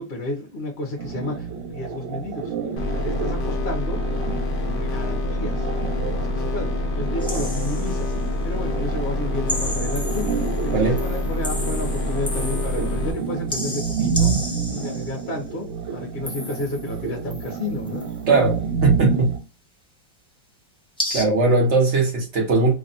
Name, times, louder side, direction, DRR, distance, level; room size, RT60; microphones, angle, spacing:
voice 1, 0.0-2.5 2.9-4.0 4.6-5.7 5.9-8.1 8.4-14.3 14.7-18.0, left 2 dB, 40° left, 1.0 m, -32 dB
sound 1, 1.0-19.4, right 6 dB, 70° right, 1.5 m, -29 dB
sound 2, 2.8-13.1, left 2 dB, 65° left, 0.5 m, -26 dB
sound 3, 7.2-8.2 9.5-10.7 11.0-13.1 13.5-15.3 16.2-17.0 17.3-18.2 21.0-21.3, left 1 dB, 5° left, 0.5 m, -33 dB
voice 2, 18.3-18.6 18.8-19.3 21.1-22.7, right 3 dB, 45° right, 1.2 m, -19 dB
3.3 x 2.4 x 4.0 m
omnidirectional pair, 2.0 m